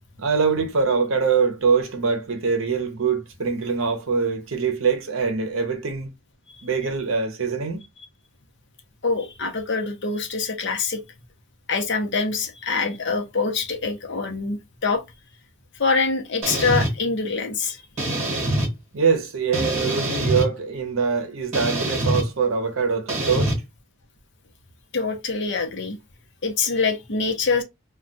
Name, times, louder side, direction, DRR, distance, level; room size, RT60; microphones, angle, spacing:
voice 1, 0.2-6.1 6.6-7.8 18.9-23.5, right 5 dB, 65° right, 0.7 m, -23 dB
voice 2, 9.0-11.0 11.7-15.0 15.8-17.8 24.9-26.0 26.4-27.6, left 4 dB, 55° left, 0.7 m, -24 dB
sound 1, 16.4-16.9 18.0-18.7 19.5-20.5 21.5-22.2 23.1-23.5, right 1 dB, 30° right, 1.1 m, -24 dB
2.3 x 2.3 x 3.8 m
head